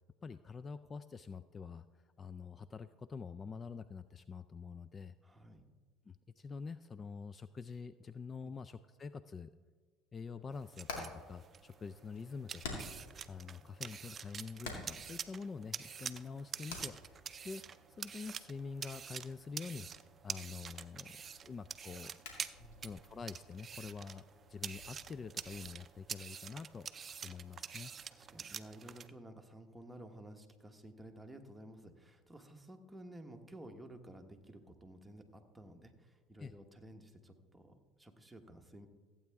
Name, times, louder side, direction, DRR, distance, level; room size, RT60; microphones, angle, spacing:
voice 1, 0.2-1.8 2.2-5.1 6.1-9.5 10.1-17.6 18.0-19.9 20.2-22.1 22.8-26.9 27.2-27.9 36.4-36.5, left 5 dB, 30° left, 14 dB, 0.3 m, -46 dB
voice 2, 5.2-5.6 8.4-8.5 22.6-22.8 28.1-38.9, right 1 dB, 10° right, 4 dB, 1.3 m, -53 dB
Hammer, 10.4-25.6, left 3 dB, 90° left, 2.1 m, -52 dB
sound 1, 10.5-29.1, right 7 dB, 35° right, 0.5 m, -47 dB
15.0 x 8.6 x 3.6 m, 1.5 s
supercardioid pair, 90°, 0 cm